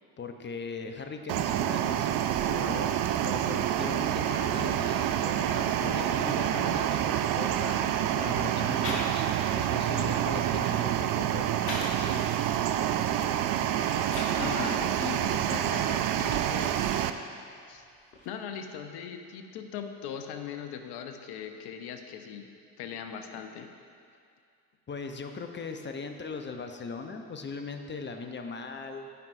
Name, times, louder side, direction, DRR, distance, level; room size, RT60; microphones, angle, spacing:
voice 1, 0.2-9.3 9.5-12.4 24.9-29.1, left 4 dB, 25° left, 5 dB, 0.7 m, -39 dB
sound 1, 1.3-17.1, right 11 dB, 50° right, 0.5 m, -28 dB
voice 2, 5.8-6.8 7.1-7.2 14.4-16.8 17.7-17.8 18.2-22.5 22.8-23.7, left 8 dB, 60° left, 6 dB, 0.8 m, -39 dB
sound 2, 7.2-8.0 8.8-9.5 9.8-12.1 12.6-14.4 15.0-17.2 17.5-18.3, left 2 dB, 90° left, 1.3 m, -42 dB
14.0 x 5.4 x 2.6 m, 2.4 s
hypercardioid pair, 60°, 45 cm